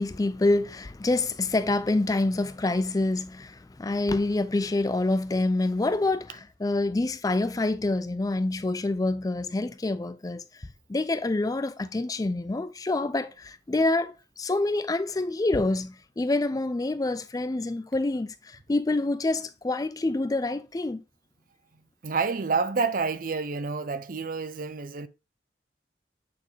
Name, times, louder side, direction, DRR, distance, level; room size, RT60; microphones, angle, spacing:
voice 1, 0.0-21.0, left 2 dB, 20° left, 0.4 m, -27 dB
voice 2, 22.0-25.1, right 4 dB, 50° right, 0.6 m, -28 dB
8.5 x 4.3 x 3.2 m
head